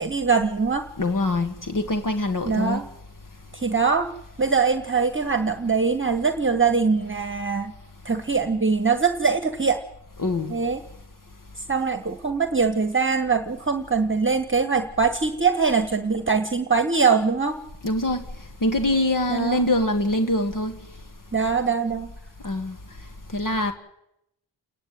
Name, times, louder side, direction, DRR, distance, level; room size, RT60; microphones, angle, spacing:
voice 1, 0.0-0.9 2.4-2.9 3.5-4.1 4.4-7.7 8.0-9.8 10.5-10.8 11.7-17.6 19.3-19.6 21.3-22.1, right 5 dB, 25° right, 1.3 m, -22 dB
voice 2, 1.0-2.8 10.2-10.5 17.8-18.2 18.6-20.8 22.4-22.8 23.3-23.7, left 1 dB, 45° left, 1.8 m, -24 dB
28.5 x 10.5 x 9.2 m
cardioid pair, 60°, 46 cm